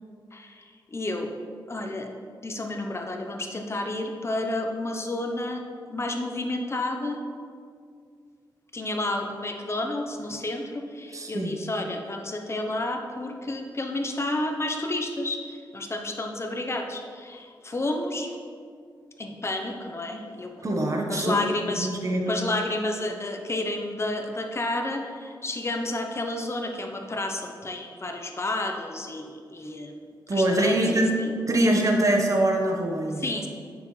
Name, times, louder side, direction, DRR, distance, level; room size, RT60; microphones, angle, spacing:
voice 1, 0.3-1.3 1.7-2.1 2.4-5.6 5.9-7.2 8.7-18.4 19.2-20.8 21.1-21.9 22.3-30.0 30.3-31.0 33.2-33.5, left 2 dB, 35° left, 3 dB, 0.9 m, -31 dB
voice 2, 11.1-11.6 20.6-21.4 21.8-22.4 30.3-31.1 31.5-33.3, right 1 dB, 40° right, 1 dB, 1.3 m, -23 dB
9.3 x 6.9 x 3.3 m, 2.2 s
cardioid pair, 65°, 8 cm